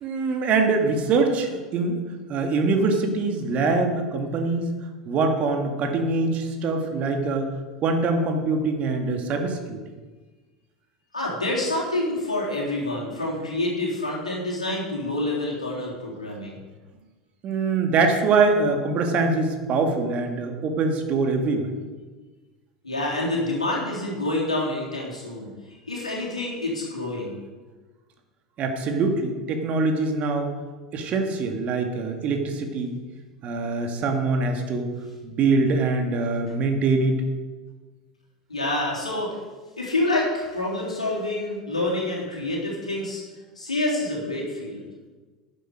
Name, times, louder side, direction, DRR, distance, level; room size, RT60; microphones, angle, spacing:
voice 1, 0.0-2.0 2.3-4.7 5.1-7.5 7.8-9.8 17.4-21.7 28.6-30.5 30.9-33.0 33.4-34.9 35.2-37.2, right 3 dB, 40° right, 4 dB, 2.0 m, -23 dB
voice 2, 11.1-16.6 22.8-25.5 25.9-27.4 38.5-39.4 39.8-43.2 43.6-44.8, left 2 dB, 85° left, -4 dB, 3.6 m, -27 dB
11.5 x 10.5 x 5.1 m, 1.3 s
figure-of-eight pair, 80°, 4 cm